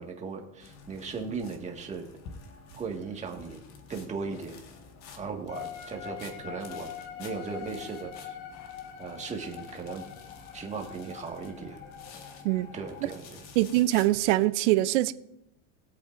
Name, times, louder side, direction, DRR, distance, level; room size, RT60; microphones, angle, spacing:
voice 1, 0.0-2.0 2.7-3.6 3.9-4.6 5.2-6.9 7.2-8.3 9.0-10.0 10.5-11.8 12.7-13.4, right 5 dB, 20° right, 1.7 m, -37 dB
sound 1, 0.6-14.4, left 4 dB, 45° left, 1.7 m, -50 dB
sound 2, 5.5-13.2, left 10 dB, 80° left, 1.7 m, -44 dB
voice 2, 13.6-15.1, right 17 dB, 75° right, 0.6 m, -23 dB
20.5 x 8.4 x 2.6 m
supercardioid pair, 135°, 36 cm